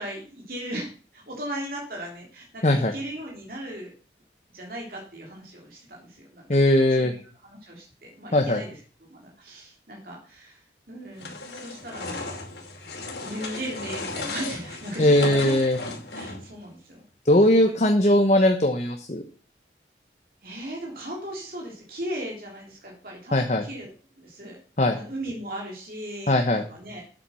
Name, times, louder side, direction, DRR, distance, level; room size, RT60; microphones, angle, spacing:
voice 1, 0.0-3.9 4.5-6.5 6.9-8.8 9.1-10.6 10.9-12.4 13.1-15.5 16.1-17.0 17.6-17.7 20.4-23.9 24.2-24.6 24.9-27.0, right 1 dB, 55° right, -2 dB, 3.4 m, -37 dB
voice 2, 6.5-7.1 8.3-8.6 15.0-15.8 17.3-19.2 23.3-23.6 24.8-25.0 26.3-26.6, left 1 dB, 40° left, 4 dB, 1.1 m, -19 dB
sound 1, 11.2-16.6, left 3 dB, 75° left, 2.7 m, -36 dB
9.0 x 8.0 x 5.7 m, 0.39 s
head